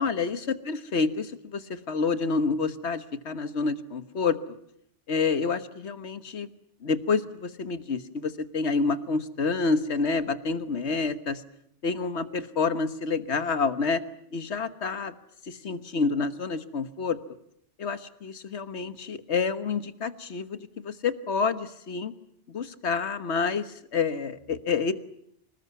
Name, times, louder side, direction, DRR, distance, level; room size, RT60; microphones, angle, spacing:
voice 1, 0.0-4.4 5.1-6.5 6.8-11.4 11.8-14.0 14.3-15.1 15.4-17.2 17.8-22.1 22.5-24.9, left 4 dB, 70° left, 12 dB, 1.5 m, -28 dB
26.0 x 19.5 x 9.5 m, 0.75 s
omnidirectional pair, 1.2 m